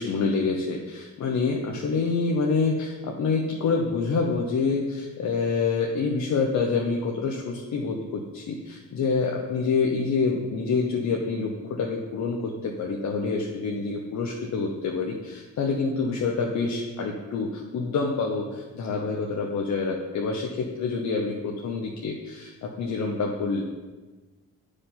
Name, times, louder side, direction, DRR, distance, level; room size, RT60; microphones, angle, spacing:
voice 1, 0.0-23.6, left 4 dB, 65° left, 0 dB, 1.0 m, -27 dB
8.6 x 5.1 x 5.6 m, 1.3 s
cardioid pair, 90°, 30 cm